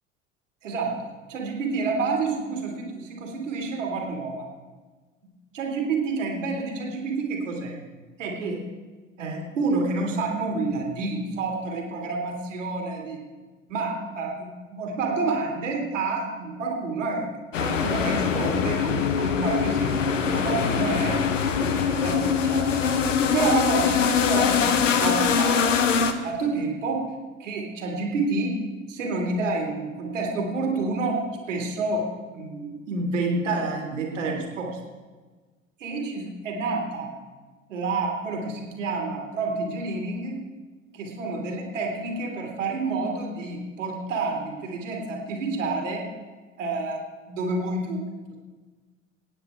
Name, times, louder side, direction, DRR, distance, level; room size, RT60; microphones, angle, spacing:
voice 1, 0.6-4.5 5.5-7.8 8.2-8.6 9.2-13.2 13.7-17.3 17.6-21.2 21.6-23.0 23.3-25.7 26.2-27.1 27.4-32.1 32.3-34.8 35.8-37.1 37.7-40.4 40.9-46.1 46.6-48.4, right 3 dB, 70° right, 1 dB, 2.4 m, -29 dB
sound 1, 17.5-26.1, left 7 dB, 70° left, 1.0 m, -23 dB
23.0 x 9.5 x 3.4 m, 1.3 s
figure-of-eight pair, 70°, 39 cm